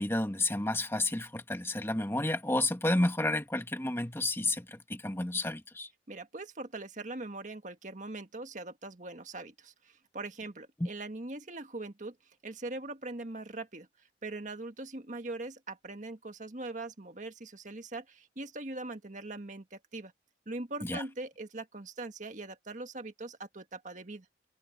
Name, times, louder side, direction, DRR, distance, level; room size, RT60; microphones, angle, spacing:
voice 1, 0.0-5.9 10.8-10.9 20.8-21.0, left 2 dB, 15° left, 1.7 m, -31 dB
voice 2, 6.1-12.1 12.4-13.9 14.2-20.1 20.4-24.2, right 2 dB, 45° right, 1.7 m, -41 dB
head